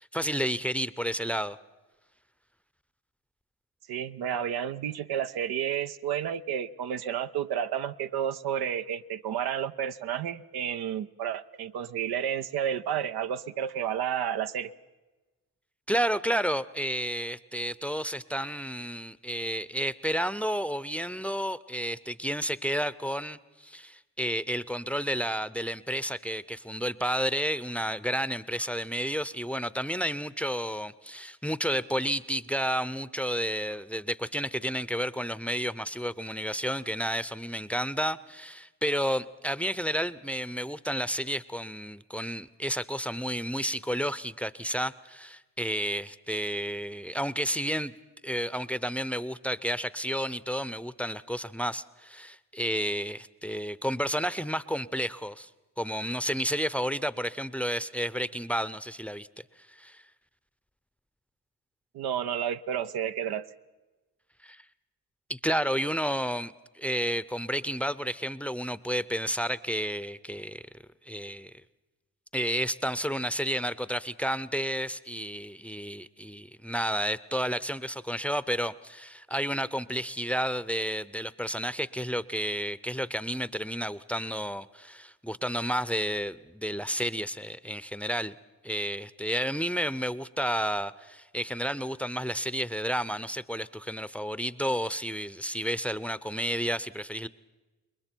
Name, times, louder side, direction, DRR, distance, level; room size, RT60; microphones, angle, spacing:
voice 1, 0.0-1.6 15.9-47.9 48.2-55.5 55.8-59.3 59.7-60.0 64.4-64.6 65.3-70.6 71.1-71.5 72.3-88.3 88.6-97.3, equal, 5° left, 17 dB, 0.6 m, -31 dB
voice 2, 3.9-14.7 61.9-63.5, right 9 dB, 85° right, 11 dB, 0.6 m, -31 dB
27.5 x 21.5 x 4.5 m, 1.2 s
supercardioid pair, 45°, 37 cm